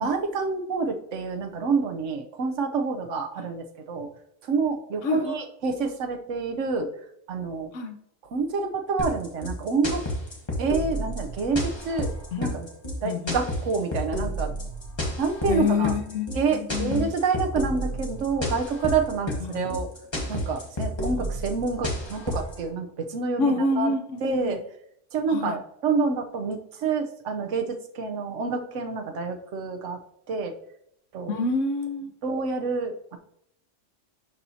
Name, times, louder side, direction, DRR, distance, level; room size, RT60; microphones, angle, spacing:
voice 1, 0.0-4.1 4.5-6.9 7.3-7.7 8.3-10.0 10.6-12.1 12.4-12.7 13.0-14.5 15.2-15.9 16.3-19.9 20.3-23.9 24.2-24.6 25.1-30.0 30.3-30.5 31.1-31.4 32.2-33.2, right 4 dB, 80° right, 5 dB, 1.1 m, -28 dB
voice 2, 5.0-5.3 7.7-8.0 12.3-12.5 13.0-13.4 15.5-17.1 19.4-19.7 23.4-24.6 25.3-25.6 31.3-32.1, left 3 dB, 85° left, 7 dB, 1.1 m, -27 dB
sound 1, 9.0-22.6, left 1 dB, 25° left, 1.3 m, -31 dB
11.5 x 4.3 x 2.7 m, 0.74 s
omnidirectional pair, 1.2 m